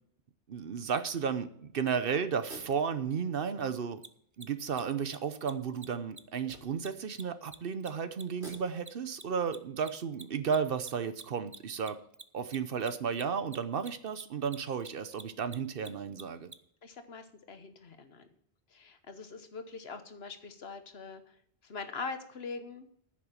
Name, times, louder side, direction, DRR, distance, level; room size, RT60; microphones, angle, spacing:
voice 1, 0.5-4.0 4.4-12.0 12.3-16.5, right 6 dB, 60° right, 12 dB, 0.9 m, -33 dB
sound 1, 2.3-3.7 4.3-4.4 5.5-7.1 8.2-9.1, right 2 dB, 85° right, 3.6 m, -52 dB
Mechanisms, 4.0-4.1 4.3-4.5 4.7-4.8 5.1-5.2 5.4-5.5 5.8-5.9 6.1-6.2 6.5-9.2 9.5-16.6, right 4 dB, 30° right, 0.3 m, -48 dB
voice 2, 16.8-18.3 18.7-21.2 21.6-22.9, left 4 dB, 70° left, 9 dB, 1.3 m, -43 dB
9.9 x 6.3 x 8.7 m, 0.66 s
omnidirectional pair, 1.1 m